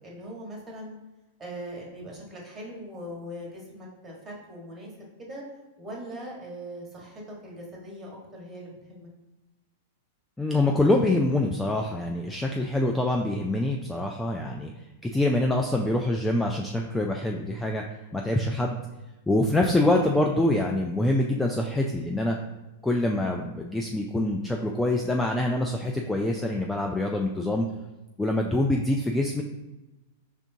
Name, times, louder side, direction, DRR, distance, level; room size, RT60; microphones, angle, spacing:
voice 1, 0.0-1.0 1.4-4.9 5.2-5.4 5.8-9.1, equal, 15° right, -3 dB, 1.5 m, -40 dB
voice 2, 10.4-14.7 15.0-17.8 18.1-18.8 19.3-22.4 22.8-27.7 28.2-29.4, left 1 dB, 5° left, 1 dB, 0.4 m, -25 dB
5.0 x 3.5 x 2.8 m, 1.1 s
hypercardioid pair, 110°, 0 cm